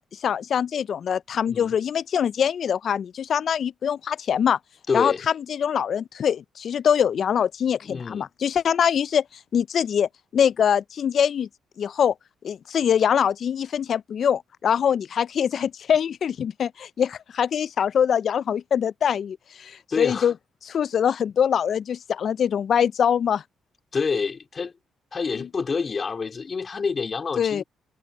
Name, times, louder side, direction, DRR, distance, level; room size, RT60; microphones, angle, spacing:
voice 1, 0.0-4.6 4.9-5.1 5.5-9.2 9.5-11.5 11.8-12.1 12.4-20.3 20.7-23.4 27.4-27.6, left 8 dB, 55° left, 0.3 m, -23 dB
voice 2, 4.9-5.2 7.8-8.3 19.9-20.3 23.9-24.7 25.1-27.6, left 5 dB, 40° left, 3.2 m, -27 dB
cardioid pair, 90°, 0 cm